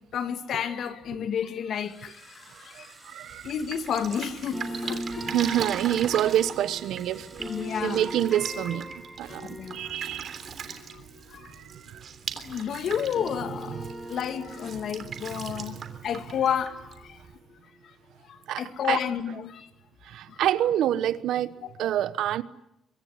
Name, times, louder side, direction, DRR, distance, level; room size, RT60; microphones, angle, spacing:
voice 1, 0.1-2.9 3.4-5.4 7.4-8.1 9.2-9.9 10.7-11.0 11.3-11.5 12.4-17.2 18.3-19.7 20.3-20.4 21.6-21.7, left 8 dB, 65° left, 2.3 m, -31 dB
sound 1, 1.8-9.1, right 3 dB, 20° right, 7.5 m, -53 dB
voice 2, 2.7-3.5 5.3-7.5 7.8-10.4 11.5-12.0 15.3-15.8 18.5-19.0 20.0-22.4, right 11 dB, 80° right, 1.1 m, -28 dB
Drip, 3.3-17.4, right 6 dB, 55° right, 3.2 m, -40 dB
sound 2, 4.5-12.6 12.9-17.9, right 1 dB, 10° left, 8.0 m, -40 dB
24.0 x 23.5 x 9.5 m
cardioid pair, 90°, 0 cm